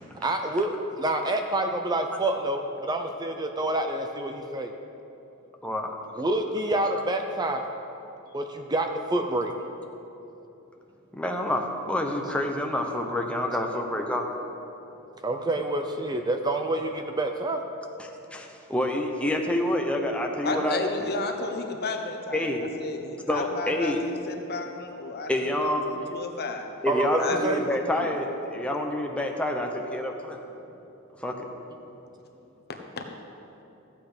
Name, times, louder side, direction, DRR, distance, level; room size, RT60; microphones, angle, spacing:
voice 1, 0.2-4.7 6.2-7.6 8.3-9.5 15.2-17.6 20.5-20.6 26.9-27.6, right 1 dB, 20° right, 5 dB, 0.5 m, -27 dB
voice 2, 5.6-5.9 11.1-14.3 18.0-21.1 22.3-22.6 23.3-24.0 25.3-26.0 26.8-30.4 31.2-31.3, left 1 dB, 5° left, 2 dB, 0.9 m, -28 dB
voice 3, 20.4-22.5 22.8-26.7 27.2-28.1 32.7-33.0, left 3 dB, 50° left, 4 dB, 1.0 m, -33 dB
14.0 x 8.4 x 5.1 m, 2.9 s
head